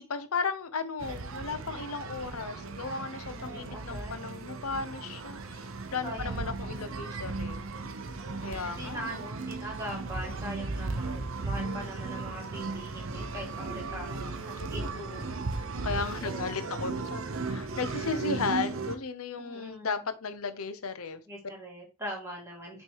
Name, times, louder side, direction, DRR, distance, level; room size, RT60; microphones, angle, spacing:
voice 1, 0.0-7.6 8.4-9.3 11.6-11.9 13.9-21.2, left 4 dB, 75° left, 0.8 m, -35 dB
sound 1, 1.0-19.0, right 3 dB, 65° right, 0.7 m, -36 dB
voice 2, 3.4-4.2 6.0-7.0 8.2-15.5 16.2-16.8 19.4-20.0 21.3-22.8, equal, 10° right, 2.3 m, -42 dB
6.1 x 3.3 x 4.6 m
head